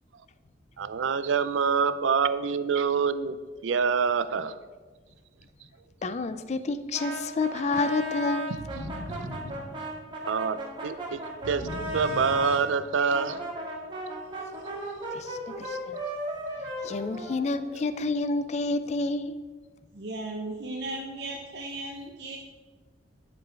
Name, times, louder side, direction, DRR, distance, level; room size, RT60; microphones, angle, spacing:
voice 1, 0.8-3.4 3.6-4.6 10.2-11.7 11.9-13.4, right 5 dB, 90° right, 14 dB, 0.4 m, -26 dB
voice 2, 6.0-8.5 15.1-16.0 16.8-19.4, left 3 dB, 35° left, 12 dB, 0.3 m, -29 dB
Brass instrument, 6.9-12.6 13.1-17.9, equal, 25° right, 1.7 m, -36 dB
sound 1, 8.6-10.3 11.4-13.1, equal, 65° left, 1.4 m, -39 dB
voice 3, 19.9-22.4, right 2 dB, 60° right, 0 dB, 0.7 m, -36 dB
10.5 x 5.2 x 4.5 m, 1.4 s
head